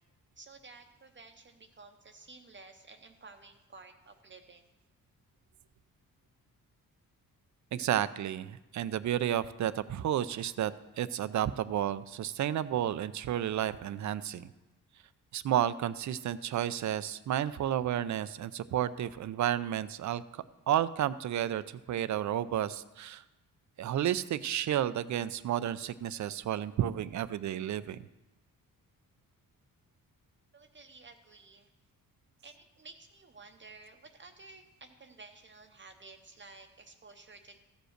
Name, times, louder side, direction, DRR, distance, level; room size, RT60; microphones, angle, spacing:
voice 1, 0.4-4.6 30.5-31.7 32.4-37.6, right 3 dB, 35° right, 5 dB, 0.8 m, -53 dB
voice 2, 7.7-10.7 11.0-14.5 15.3-20.2 20.7-23.2 23.8-28.0, right 11 dB, 55° right, 15 dB, 0.5 m, -31 dB
14.5 x 5.2 x 6.5 m, 1.0 s
cardioid pair, 105°, 34 cm